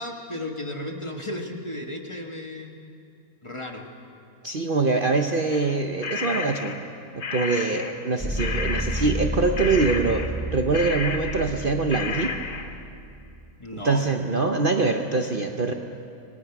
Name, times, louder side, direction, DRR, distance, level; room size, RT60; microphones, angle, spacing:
voice 1, 0.0-2.8 3.4-3.9 13.6-14.1, left 1 dB, 20° left, 2 dB, 1.5 m, -34 dB
voice 2, 4.4-6.8 7.1-10.2 10.5-12.3 13.8-15.7, right 3 dB, 40° right, 4 dB, 1.0 m, -24 dB
sound 1, 5.5-8.1 8.4-11.7 11.9-12.8, left 5 dB, 65° left, 1.4 m, -32 dB
sound 2, 8.2-13.5, right 1 dB, 10° right, 0.8 m, -31 dB
26.5 x 20.0 x 6.0 m, 2.5 s
omnidirectional pair, 1.5 m